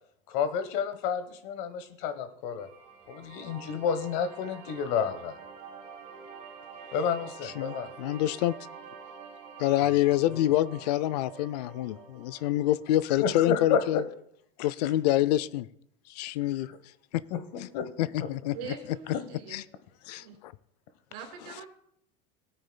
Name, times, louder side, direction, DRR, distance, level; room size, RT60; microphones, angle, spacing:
voice 1, 0.3-2.7 3.1-5.4 6.9-7.9 10.3-10.4 13.2-14.0 17.3-17.9 18.2-18.3 19.1-19.2, left 7 dB, 60° left, 1.1 m, -30 dB
sound 1, 2.6-13.6, right 6 dB, 30° right, 2.1 m, -47 dB
voice 2, 7.4-8.5 9.6-14.0 14.6-15.7 16.1-16.7 17.1-17.2 17.6-17.7 18.0-18.6 19.5-19.6 20.1-20.5, left 14 dB, 90° left, 0.5 m, -27 dB
voice 3, 18.5-19.6 20.1-20.4 21.1-21.7, right 6 dB, 75° right, 3.0 m, -42 dB
17.0 x 9.0 x 2.2 m
supercardioid pair, 140°, 20 cm